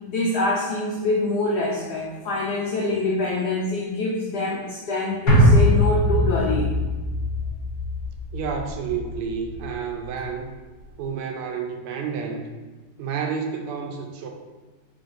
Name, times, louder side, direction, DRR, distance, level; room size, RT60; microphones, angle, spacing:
voice 1, 0.1-6.7, left 2 dB, 90° left, -3 dB, 0.8 m, -25 dB
sound 1, 5.3-9.7 10.0-10.1, left 1 dB, 45° left, 1.1 m, -21 dB
voice 2, 8.3-10.5 11.0-12.5 13.0-14.3, right 6 dB, 90° right, 3 dB, 1.5 m, -30 dB
3.8 x 3.4 x 2.5 m, 1.3 s
omnidirectional pair, 2.3 m